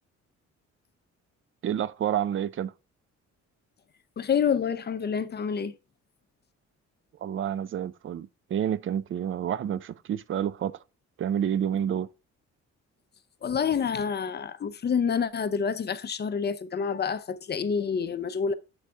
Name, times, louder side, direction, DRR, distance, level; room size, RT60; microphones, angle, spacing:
voice 1, 1.6-2.7 7.2-10.8 11.2-12.1, right 9 dB, 45° right, 0.4 m, -29 dB
voice 2, 4.2-5.7 13.4-18.5, left 6 dB, 35° left, 0.6 m, -28 dB
7.9 x 4.1 x 3.5 m
cardioid pair, 90°, 30 cm